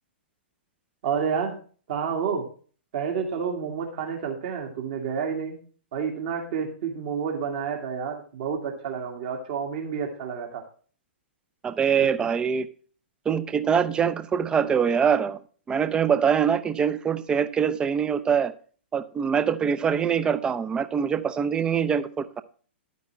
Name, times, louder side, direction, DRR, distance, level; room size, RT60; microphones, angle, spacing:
voice 1, 1.0-1.5 1.9-2.5 2.9-5.6 5.9-10.6 12.0-12.1, right 6 dB, 45° right, 2 dB, 2.1 m, -29 dB
voice 2, 11.6-12.7 13.3-15.4 15.7-18.5 18.9-22.4, right 7 dB, 15° right, 14 dB, 0.7 m, -24 dB
11.5 x 9.4 x 3.1 m, 0.41 s
figure-of-eight pair, 110°, 6 cm